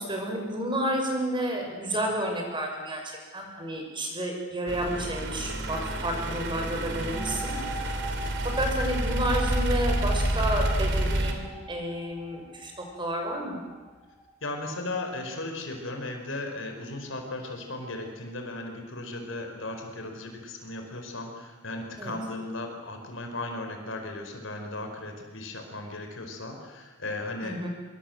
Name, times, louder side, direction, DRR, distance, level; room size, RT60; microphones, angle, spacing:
voice 1, 0.0-3.0 3.3-8.0 8.4-13.6 22.0-22.2 27.4-27.7, right 1 dB, 25° right, 2 dB, 6.3 m, -31 dB
sound 1, 4.7-11.3, right 1 dB, 65° right, 3.3 m, -29 dB
sound 2, 6.9-14.4, right 1 dB, 5° right, 3.8 m, -42 dB
voice 2, 7.0-7.4 14.4-27.6, left 2 dB, 75° left, 4 dB, 4.9 m, -36 dB
25.5 x 23.0 x 8.0 m, 1.3 s
head